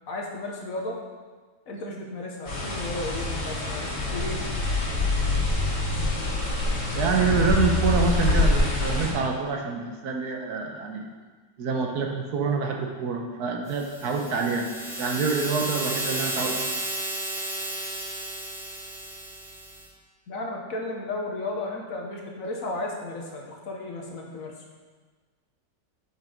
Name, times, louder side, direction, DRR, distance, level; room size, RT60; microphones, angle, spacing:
voice 1, 0.1-1.0 1.7-4.4 20.3-24.5, left 2 dB, 55° left, 0 dB, 1.3 m, -34 dB
sound 1, 2.5-9.1, left 2 dB, 85° left, 2.4 m, -25 dB
voice 2, 6.9-11.1 11.6-14.7 15.0-16.5, right 5 dB, 70° right, 2 dB, 1.3 m, -26 dB
sound 2, 13.7-19.8, right 1 dB, ahead, 1.9 m, -33 dB
6.8 x 5.6 x 5.0 m, 1.4 s
omnidirectional pair, 1.8 m